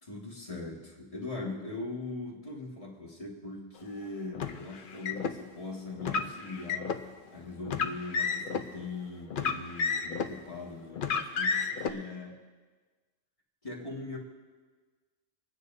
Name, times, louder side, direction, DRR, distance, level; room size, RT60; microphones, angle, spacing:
voice 1, 0.0-12.4 13.6-14.2, left 3 dB, 30° left, -3 dB, 1.9 m, -41 dB
Car, 4.3-5.3 6.0-7.0 7.6-8.6 9.3-10.4 11.0-11.9, left 5 dB, 55° left, 0.8 m, -31 dB
28.5 x 9.7 x 2.7 m, 1.4 s
omnidirectional pair, 1.2 m